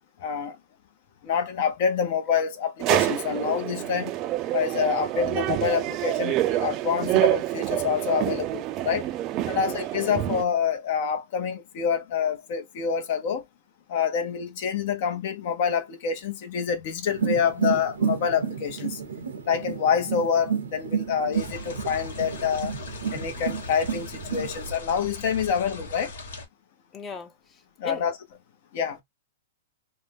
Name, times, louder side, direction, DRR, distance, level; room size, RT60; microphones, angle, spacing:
voice 1, 0.2-0.6 1.2-4.2 4.5-9.1 9.5-13.4 13.9-19.0 19.4-22.7 23.1-26.1 27.8-28.1 28.7-29.0, left 7 dB, 55° left, 0.8 m, -27 dB
sound 1, 2.8-10.4, right 14 dB, 35° right, 0.4 m, -27 dB
voice 2, 9.5-9.8 26.9-28.0, left 5 dB, 20° left, 0.6 m, -39 dB
sound 2, 17.1-24.8, right 7 dB, 85° right, 0.6 m, -31 dB
sound 3, 21.3-26.5, left 2 dB, 80° left, 1.2 m, -39 dB
2.6 x 2.1 x 3.4 m
hypercardioid pair, 135°, 0 cm